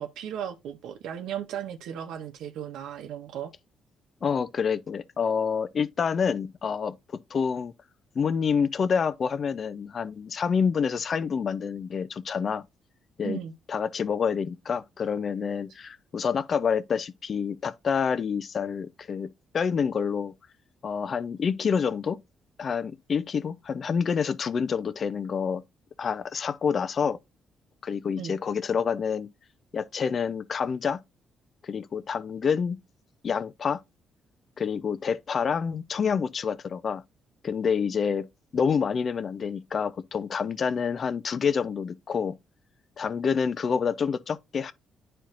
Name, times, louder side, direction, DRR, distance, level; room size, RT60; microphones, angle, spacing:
voice 1, 0.0-3.5 13.2-13.5 28.2-28.3, right 9 dB, 85° right, 0.6 m, -36 dB
voice 2, 4.2-7.0 7.3-7.7 8.2-12.6 13.2-13.4 13.7-20.3 20.8-22.2 22.6-25.6 26.0-27.2 27.8-29.3 29.7-31.0 31.6-32.8 33.2-33.8 34.6-37.0 37.4-38.3 38.5-42.4 43.0-44.7, left 6 dB, 50° left, 0.5 m, -27 dB
10.0 x 4.4 x 2.5 m
cardioid pair, 90°, 0 cm